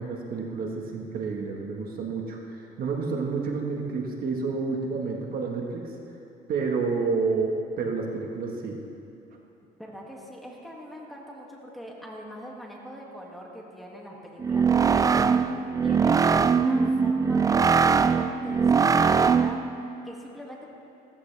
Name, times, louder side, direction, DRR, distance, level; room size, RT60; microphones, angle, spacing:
voice 1, 0.0-5.9 6.5-8.8, right 4 dB, 60° right, 1 dB, 1.6 m, -29 dB
voice 2, 9.8-15.4 15.8-19.6 20.0-20.6, equal, ahead, -3 dB, 2.3 m, -42 dB
sound 1, 14.4-19.7, right 5 dB, 20° right, 0.4 m, -21 dB
16.0 x 14.5 x 3.5 m, 2.6 s
cardioid pair, 110°, 17 cm